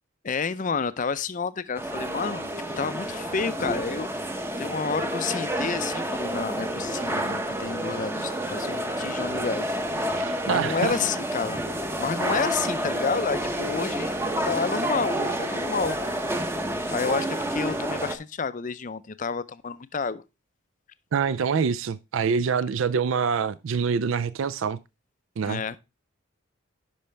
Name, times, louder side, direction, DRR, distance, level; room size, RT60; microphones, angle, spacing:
voice 1, 0.2-2.5 2.8-4.1 4.6-9.8 10.5-11.6 12.0-14.2 14.4-16.0 16.9-20.2 25.4-25.8, left 5 dB, 35° left, 0.5 m, -30 dB
sound 1, 1.7-18.2, right 1 dB, 10° right, 0.7 m, -29 dB
voice 2, 10.2-11.0 21.1-24.8 25.4-25.6, right 6 dB, 60° right, 0.4 m, -25 dB
10.5 x 5.6 x 3.3 m
head